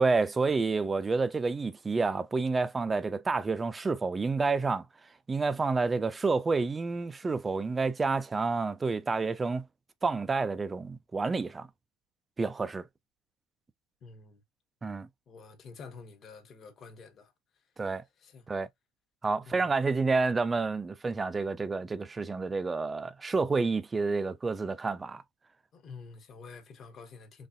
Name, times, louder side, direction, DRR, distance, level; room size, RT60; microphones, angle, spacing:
voice 1, 0.0-4.8 5.3-9.6 10.0-11.7 12.4-12.9 14.8-15.1 17.8-18.0 18.5-18.7 19.2-25.2, right 4 dB, 15° right, 0.4 m, -29 dB
voice 2, 14.0-14.4 15.3-17.3 18.2-18.5 19.4-19.7 25.7-27.5, left 4 dB, 35° left, 1.0 m, -48 dB
3.9 x 3.3 x 2.5 m
cardioid pair, 145°, 0 cm